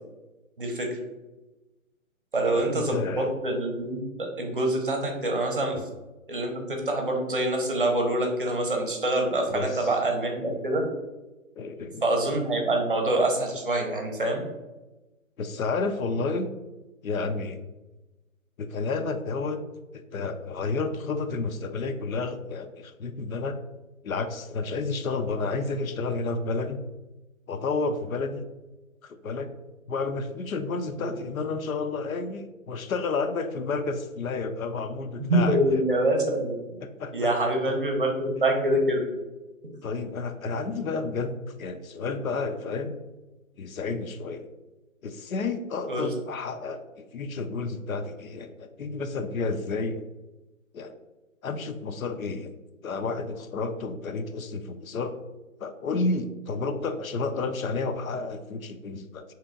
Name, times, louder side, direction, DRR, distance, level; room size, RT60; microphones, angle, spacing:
voice 1, 0.6-1.0 2.3-5.8 6.3-10.9 12.0-14.4 31.0-31.1 35.3-36.8 37.1-39.0 45.9-46.1, right 1 dB, 40° right, 2 dB, 0.6 m, -25 dB
voice 2, 2.4-3.3 5.7-5.8 9.5-9.9 11.6-12.1 15.4-16.5 17.0-17.6 18.6-19.7 19.9-23.6 24.0-26.8 27.5-28.5 29.0-29.5 29.9-35.8 36.8-37.3 39.8-43.0 43.6-44.5 45.0-50.0 50.7-50.9 51.4-52.5 52.8-55.2 55.6-59.2, left 3 dB, 80° left, 9 dB, 0.6 m, -31 dB
3.4 x 2.9 x 3.7 m, 1.1 s
hypercardioid pair, 170°, 41 cm